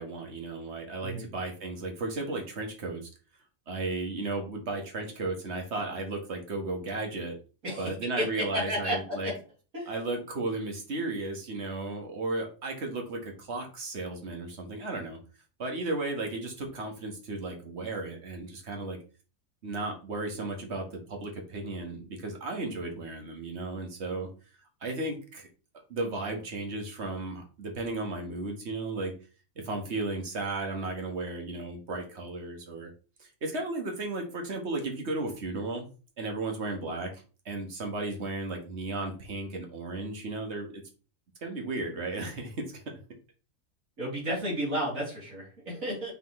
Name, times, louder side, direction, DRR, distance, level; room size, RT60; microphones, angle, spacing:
voice 1, 0.0-3.0 3.7-7.3 7.8-9.3 9.9-15.2 15.6-19.0 19.6-24.3 24.8-25.5 25.9-29.1 29.6-32.9 33.2-35.9 36.2-37.1 37.5-40.7 41.4-42.7, right 2 dB, 55° right, 3 dB, 1.9 m, -34 dB
voice 2, 7.6-9.3 9.7-9.9 44.0-46.1, equal, 80° right, -5 dB, 3.9 m, -32 dB
6.9 x 6.0 x 3.2 m, 0.35 s
omnidirectional pair, 1.4 m